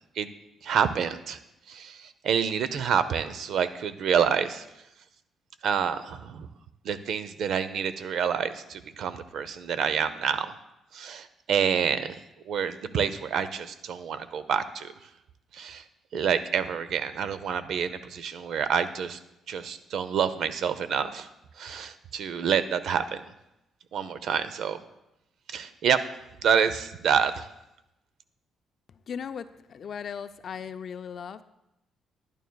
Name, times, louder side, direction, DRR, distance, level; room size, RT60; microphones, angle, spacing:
voice 1, 0.6-1.4 1.7-4.7 5.6-6.5 6.8-10.5 10.9-12.2 12.5-14.9 15.5-15.8 16.1-19.2 19.5-21.3 21.6-23.2 23.9-24.8 25.5-26.1 26.4-27.5, right 7 dB, 70° right, 13 dB, 0.6 m, -27 dB
voice 2, 29.1-31.4, left 7 dB, 55° left, 11 dB, 0.4 m, -37 dB
11.5 x 10.5 x 2.3 m, 0.88 s
cardioid pair, 90°, 0 cm